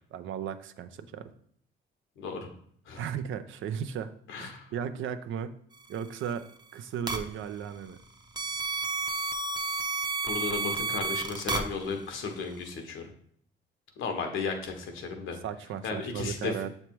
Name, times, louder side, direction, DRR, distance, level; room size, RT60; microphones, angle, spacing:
voice 1, 0.1-1.3 2.9-4.1 4.4-5.6 5.9-6.5 6.7-8.0 15.4-16.7, right 8 dB, 75° right, 10 dB, 0.6 m, -35 dB
voice 2, 2.2-2.5 2.9-3.0 4.3-4.7 10.2-13.1 14.0-15.4 15.8-16.6, left 4 dB, 80° left, 4 dB, 1.1 m, -34 dB
sound 1, 7.1-7.2 8.4-11.6, right 3 dB, 20° right, 0.7 m, -30 dB
7.1 x 3.2 x 4.5 m, 0.63 s
cardioid pair, 90°, 20 cm